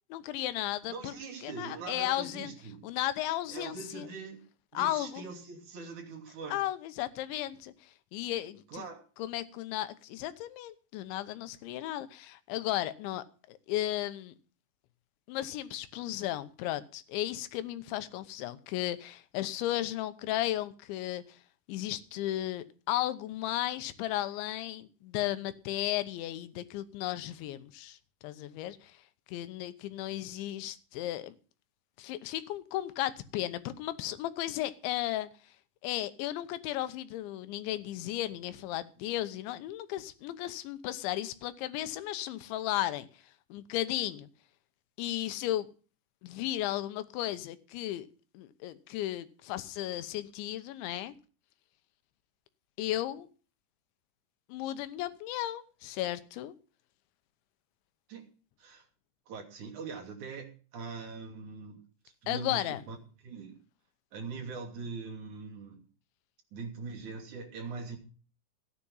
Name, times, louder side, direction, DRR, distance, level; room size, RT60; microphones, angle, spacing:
voice 1, 0.1-1.1 1.4-2.5 2.8-4.1 4.7-5.2 6.5-7.7 8.1-8.8 9.2-14.3 15.3-21.4 21.7-28.0 28.2-28.9 29.3-31.3 32.0-35.3 35.8-43.1 43.5-44.3 45.0-45.7 46.2-48.1 48.3-51.1 52.8-53.3 54.5-56.5 62.3-62.8, left 14 dB, 90° left, 3.3 m, -35 dB
voice 2, 0.9-2.8 3.5-4.4 4.7-6.6 8.7-9.0 58.1-58.3 58.6-58.9 59.3-61.8 62.2-63.0 63.2-63.6 64.1-65.8 66.5-68.0, right 4 dB, 45° right, 3.9 m, -42 dB
15.0 x 9.9 x 5.5 m
omnidirectional pair, 5.2 m